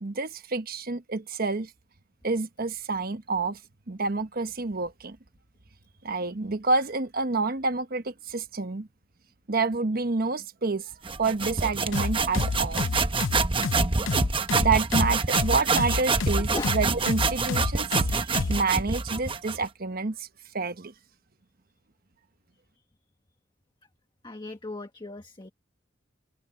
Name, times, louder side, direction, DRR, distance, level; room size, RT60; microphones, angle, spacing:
voice 1, 0.0-1.7 2.2-3.6 3.9-5.2 6.0-8.9 9.5-10.9 11.2-13.0 14.6-20.3 20.5-20.9, right 4 dB, 50° right, 1.1 m, -28 dB
sound 1, 11.0-19.7, right 4 dB, 25° right, 1.0 m, -27 dB
sound 2, 11.9-18.6, left 4 dB, 80° left, 0.6 m, -29 dB
voice 2, 24.2-25.5, left 2 dB, 25° left, 1.5 m, -36 dB
open air
head